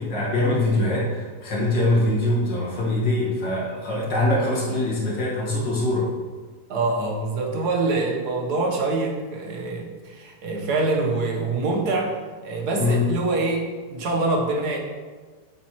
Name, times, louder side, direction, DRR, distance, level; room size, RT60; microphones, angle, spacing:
voice 1, 0.0-6.1 12.8-13.1, left 1 dB, 80° left, -6 dB, 2.5 m, -23 dB
voice 2, 6.7-12.2 12.4-13.6 13.9-14.8, right 3 dB, 65° right, 0 dB, 1.7 m, -25 dB
8.5 x 7.5 x 3.1 m, 1.4 s
omnidirectional pair, 1.9 m